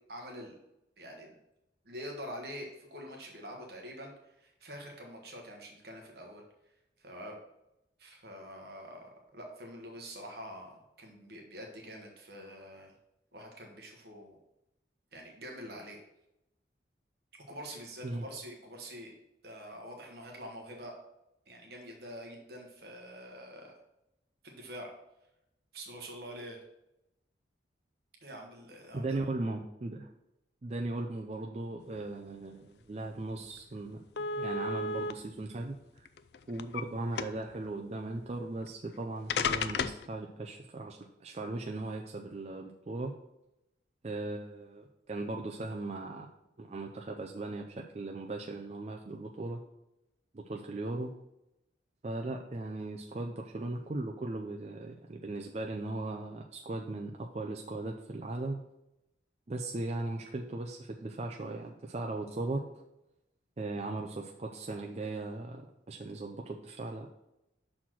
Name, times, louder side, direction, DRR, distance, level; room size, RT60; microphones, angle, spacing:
voice 1, 0.1-0.5 1.0-1.3 1.8-6.4 7.0-7.4 8.0-12.9 13.3-14.4 15.1-16.0 17.3-19.1 19.4-21.0 21.5-23.7 24.4-24.9 25.7-26.6 28.2-29.2, equal, 60° right, 1 dB, 1.2 m, -46 dB
voice 2, 28.9-30.1 30.6-36.1 36.5-43.1 44.0-46.3 46.6-49.6 50.3-51.1 52.0-58.6 59.5-62.6 63.6-67.1, right 2 dB, 35° right, 2 dB, 0.4 m, -38 dB
sound 1, 33.1-33.2 33.5-33.6 34.2-35.1 36.0-36.8 37.2-37.6 38.7-38.8 39.3-40.1, left 4 dB, 65° left, 0.4 m, -33 dB
6.1 x 4.3 x 5.7 m, 0.88 s
head